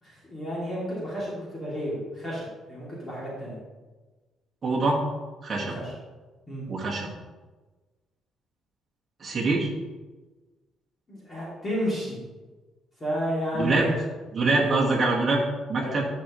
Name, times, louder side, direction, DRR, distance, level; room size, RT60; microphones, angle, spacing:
voice 1, 0.0-3.6 5.6-5.9 6.5-6.7 11.1-12.2 13.0-13.9 14.5-14.8 15.8-16.0, equal, 20° left, -7 dB, 2.9 m, -32 dB
voice 2, 4.6-5.0 5.4-5.8 6.7-7.1 9.2-9.7 13.5-13.9 14.3-15.4 15.7-16.1, right 3 dB, 30° right, -3 dB, 1.8 m, -24 dB
11.0 x 6.8 x 3.2 m, 1.3 s
cardioid pair, 155°, 0 cm